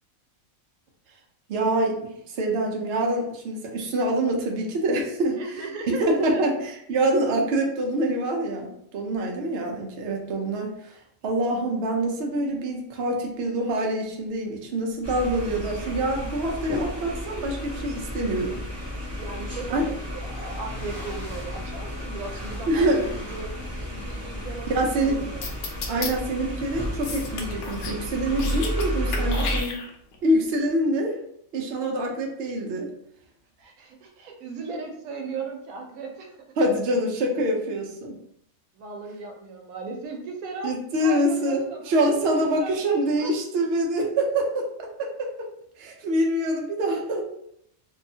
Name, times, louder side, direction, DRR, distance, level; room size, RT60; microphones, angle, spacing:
voice 1, 1.5-5.4 5.9-18.6 19.7-19.9 22.7-23.0 24.7-25.2 25.9-29.8 30.2-31.2 31.5-32.9 36.6-38.2 40.6-45.5 45.8-47.2, right 1 dB, 60° right, 1 dB, 0.7 m, -25 dB
voice 2, 5.4-6.4 19.2-23.5 23.8-25.5 29.1-29.7 33.6-36.4 38.7-40.7 41.0-41.9 42.3-43.3, right 3 dB, 85° right, 3 dB, 1.1 m, -37 dB
sound 1, 13.3-13.4 13.9-29.8, equal, 25° left, 1.0 m, -48 dB
sound 2, 15.0-29.6, equal, 20° right, 0.4 m, -32 dB
sound 3, 25.4-26.1 27.0-28.0 28.3-28.9 29.1-30.2, left 5 dB, 85° left, 1.0 m, -32 dB
2.7 x 2.3 x 2.6 m, 0.72 s
omnidirectional pair, 1.5 m